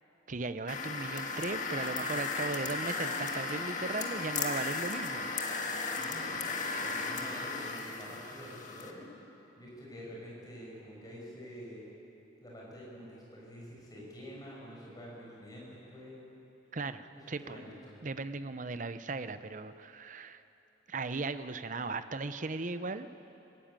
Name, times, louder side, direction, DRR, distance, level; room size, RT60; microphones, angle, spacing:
voice 1, 0.3-5.3 6.7-6.8 16.7-17.6 18.0-20.4 20.9-23.1, right 3 dB, 40° right, 11 dB, 0.7 m, -37 dB
sound 1, 0.7-8.9, left 4 dB, 40° left, 1.8 m, -35 dB
voice 2, 5.9-6.4 6.8-9.1 9.6-11.8 12.4-16.2 17.1-18.0, equal, 20° left, -5 dB, 6.8 m, -47 dB
26.0 x 16.0 x 9.0 m, 3.0 s
head